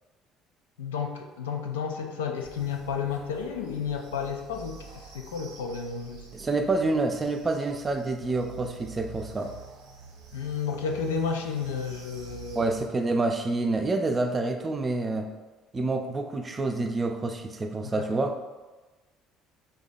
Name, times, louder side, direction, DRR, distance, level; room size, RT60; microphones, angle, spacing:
voice 1, 0.8-6.3 10.3-12.7 17.8-18.1, left 6 dB, 80° left, 3 dB, 0.4 m, -32 dB
sound 1, 2.4-12.9, right 5 dB, 70° right, 0.6 m, -48 dB
voice 2, 6.3-9.5 12.6-15.3 15.7-18.4, right 2 dB, 30° right, 6 dB, 0.5 m, -27 dB
3.7 x 2.9 x 4.1 m, 1.2 s
hypercardioid pair, 55°, 0 cm